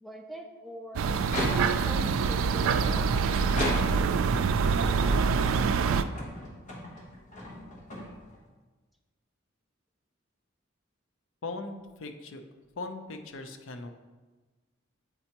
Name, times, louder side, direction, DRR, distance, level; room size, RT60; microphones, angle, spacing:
voice 1, 0.0-1.1 1.5-3.8, equal, ahead, 2 dB, 0.4 m, -44 dB
sound 1, 1.0-6.0, right 5 dB, 75° right, 0.3 m, -25 dB
sound 2, 1.2-2.0 2.6-4.3 4.9-8.5, left 1 dB, 40° left, 1.0 m, -37 dB
voice 2, 11.4-12.4 12.8-13.9, left 3 dB, 70° left, 6 dB, 0.5 m, -39 dB
8.1 x 4.3 x 2.9 m, 1.3 s
head